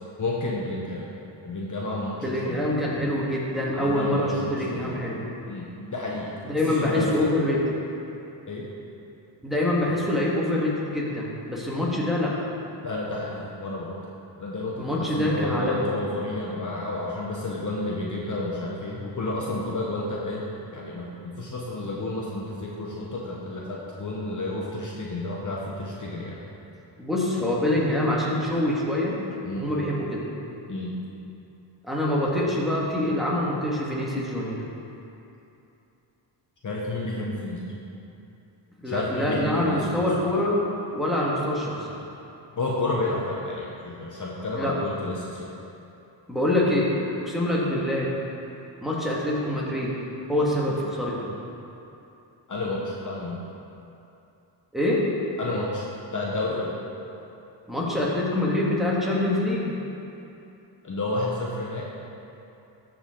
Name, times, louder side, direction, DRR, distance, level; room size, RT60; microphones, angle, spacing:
voice 1, 0.2-1.1 1.4-2.2 2.4-2.7 3.7-5.0 5.5-6.3 6.7-7.3 8.5-8.7 12.8-14.0 14.4-20.5 20.7-26.4 29.4-29.7 30.7-31.0 36.6-37.7 38.8-40.1 42.6-45.5 50.7-50.8 52.5-53.4 55.4-56.8 60.8-61.8, left 2 dB, 40° left, -4 dB, 1.1 m, -31 dB
voice 2, 2.2-5.2 6.4-7.6 9.4-12.3 14.8-15.8 27.0-29.2 29.6-30.3 31.8-34.6 38.8-40.6 40.9-41.9 44.6-44.7 46.3-46.9 47.2-48.1 48.8-49.9 50.3-51.2 54.7-55.0 57.7-59.7, left 1 dB, ahead, -6 dB, 1.8 m, -25 dB
13.5 x 5.0 x 3.8 m, 2.8 s
cardioid pair, 90°, 46 cm